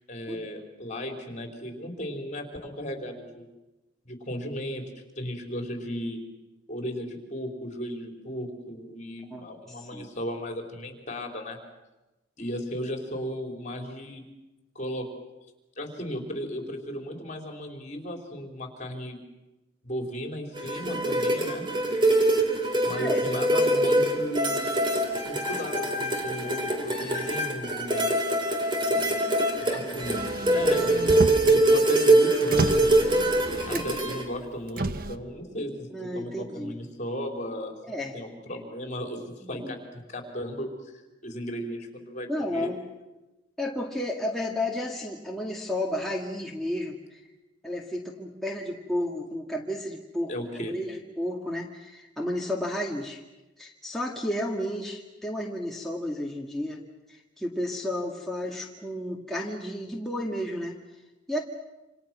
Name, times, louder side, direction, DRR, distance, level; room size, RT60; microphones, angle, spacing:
voice 1, 0.1-3.5 4.0-4.8 5.2-6.2 6.7-11.6 12.4-14.2 14.7-15.1 15.8-19.2 19.8-21.6 22.8-24.7 25.3-28.1 28.9-29.2 29.7-31.1 31.5-33.0 33.7-37.7 38.1-40.9 41.2-42.7 50.3-50.7, equal, 40° left, 3 dB, 4.4 m, -35 dB
voice 2, 9.3-10.1 22.9-23.2 33.7-33.8 35.9-36.8 37.9-38.2 39.4-39.7 42.3-42.8 43.6-47.2 47.6-53.2 53.6-56.8 57.1-60.8 61.3-61.4, left 1 dB, ahead, -2 dB, 2.0 m, -32 dB
sound 1, 20.6-34.2, right 1 dB, 25° right, 3.7 m, -24 dB
Motor vehicle (road), 30.0-31.6 32.0-34.1 34.7-35.1, right 2 dB, 50° right, 1.1 m, -31 dB
28.0 x 27.5 x 6.1 m, 1.1 s
head